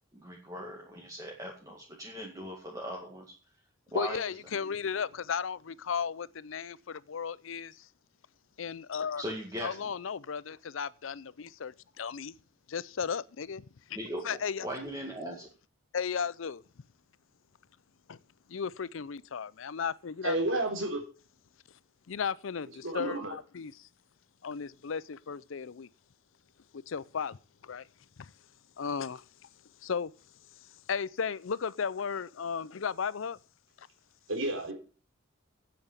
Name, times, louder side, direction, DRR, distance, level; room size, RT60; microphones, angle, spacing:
voice 1, 0.1-3.3 3.9-4.3 9.2-9.8 14.0-15.5, right 1 dB, 15° right, 2.0 m, -39 dB
voice 2, 3.9-7.9 8.6-9.2 9.6-12.3 12.7-14.0 14.2-14.7 15.9-16.6 18.1-18.2 18.5-20.3 22.1-23.9 24.4-25.9 26.7-27.4 27.6-27.9 28.2-28.3 28.8-29.2 29.8-30.1 30.9-33.4, left 6 dB, 80° left, 0.5 m, -35 dB
voice 3, 20.2-21.0 22.8-23.3 34.3-34.7, right 2 dB, 80° right, 3.9 m, -31 dB
8.8 x 7.8 x 8.2 m
head